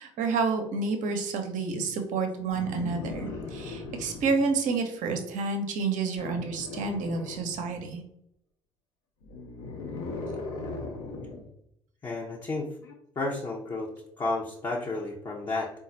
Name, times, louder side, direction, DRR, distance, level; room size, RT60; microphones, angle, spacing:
voice 1, 0.0-8.0, right 4 dB, 55° right, 5 dB, 0.8 m, -29 dB
sound 1, 2.5-4.5 6.2-7.9 9.2-11.5 12.8-12.9, left 3 dB, 65° left, 0.9 m, -38 dB
voice 2, 12.0-12.7 13.2-13.9 14.2-15.7, left 3 dB, 30° left, -3 dB, 0.8 m, -31 dB
3.9 x 2.5 x 4.0 m, 0.76 s
figure-of-eight pair, 50°, 15 cm